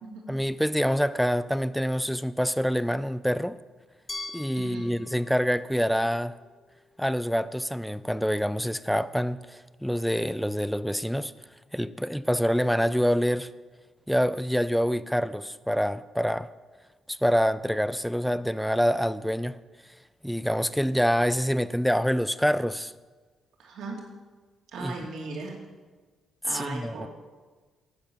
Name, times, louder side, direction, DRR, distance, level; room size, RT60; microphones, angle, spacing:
voice 1, 0.3-3.6 4.3-6.3 7.0-11.3 11.7-13.5 14.1-16.5 17.1-19.6 20.2-22.9 24.8-24.9 26.5-27.1, equal, ahead, 0.5 m, -26 dB
Glass, 4.1-7.0, left 2 dB, 25° left, 1.4 m, -43 dB
voice 2, 4.6-4.9 23.6-24.0 24.7-25.6 26.4-27.1, right 3 dB, 75° right, 2.7 m, -37 dB
10.5 x 8.0 x 7.1 m
cardioid pair, 90°, 0 cm